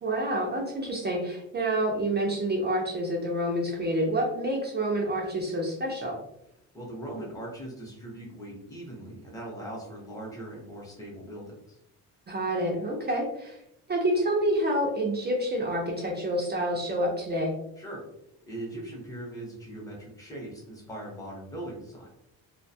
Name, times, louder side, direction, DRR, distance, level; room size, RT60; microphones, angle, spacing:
voice 1, 0.0-6.2 12.3-13.6 13.9-17.5, right 1 dB, 30° right, -1 dB, 0.4 m, -28 dB
voice 2, 6.7-11.8 17.8-18.0 18.4-22.1, right 1 dB, 10° left, -3 dB, 0.8 m, -40 dB
2.4 x 2.2 x 2.6 m, 0.79 s
cardioid pair, 130°, 36 cm